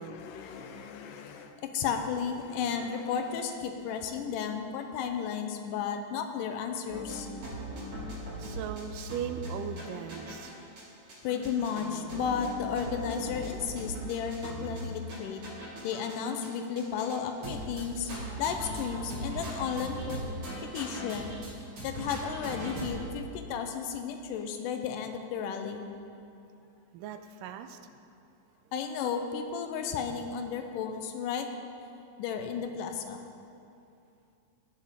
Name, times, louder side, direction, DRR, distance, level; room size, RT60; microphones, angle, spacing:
voice 1, 0.0-7.3 11.2-15.4 15.8-18.1 18.4-20.2 20.6-21.3 21.8-25.9 28.7-31.5 32.2-33.2, left 7 dB, 80° left, 6 dB, 2.3 m, -33 dB
sound 1, 6.9-10.5 10.8-10.9 11.1-16.5 16.8-17.2 17.4-21.5 21.8-23.1, right 1 dB, 45° right, 3.4 m, -39 dB
voice 2, 8.4-10.5 26.9-27.8, right 8 dB, 85° right, 8 dB, 2.2 m, -38 dB
18.5 x 7.4 x 3.7 m, 2.6 s
omnidirectional pair, 3.8 m